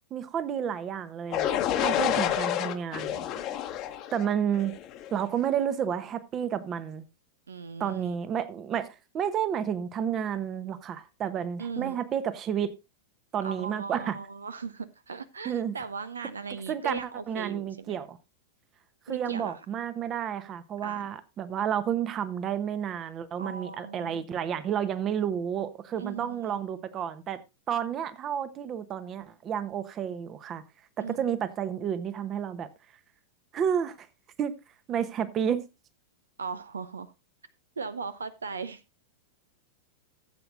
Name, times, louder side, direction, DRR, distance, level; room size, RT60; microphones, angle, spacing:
voice 1, 0.1-1.5 1.8-3.2 4.1-4.7 5.1-7.1 7.8-8.9 9.1-12.7 13.3-14.2 15.4-15.8 16.7-17.0 17.3-18.2 19.1-27.4 27.7-30.6 31.0-32.7 33.5-34.1 34.4-34.5 34.9-35.7, right 8 dB, 30° right, 0.9 m, -31 dB
sound 1, 1.3-5.2, left 11 dB, 35° left, 1.0 m, -29 dB
voice 2, 7.5-8.1 11.6-12.0 13.4-18.0 19.1-19.6 20.8-21.0 23.4-24.2 26.0-26.6 31.0-31.3 36.4-37.1 37.8-38.8, right 5 dB, 75° right, 0.6 m, -38 dB
15.0 x 8.0 x 2.6 m
figure-of-eight pair, 95°, 0 cm